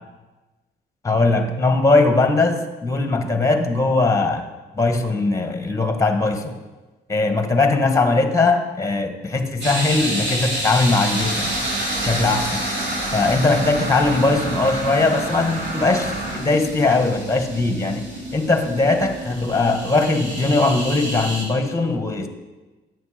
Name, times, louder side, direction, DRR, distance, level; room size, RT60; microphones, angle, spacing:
voice 1, 1.0-4.4 4.7-6.5 7.1-11.5 12.0-12.6 13.1-18.0 18.3-22.3, left 3 dB, 15° left, 7 dB, 1.4 m, -20 dB
sound 1, 9.6-21.4, right 1 dB, 70° right, 3.1 m, -29 dB
sound 2, 11.1-16.4, right 2 dB, 45° right, 3.0 m, -29 dB
11.0 x 8.0 x 5.0 m, 1.2 s
cardioid pair, 90°, 20 cm